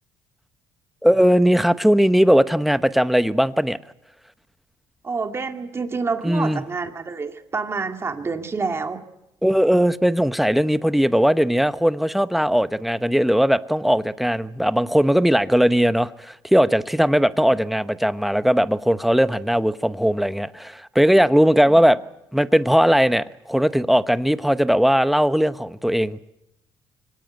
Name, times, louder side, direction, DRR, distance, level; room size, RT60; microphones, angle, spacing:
voice 1, 1.0-3.8 6.2-6.6 9.4-22.0 22.3-26.2, equal, ahead, 12 dB, 0.9 m, -19 dB
voice 2, 5.0-9.0, right 4 dB, 30° right, 5 dB, 2.2 m, -28 dB
24.5 x 17.5 x 8.9 m, 0.89 s
cardioid pair, 105°, 9 cm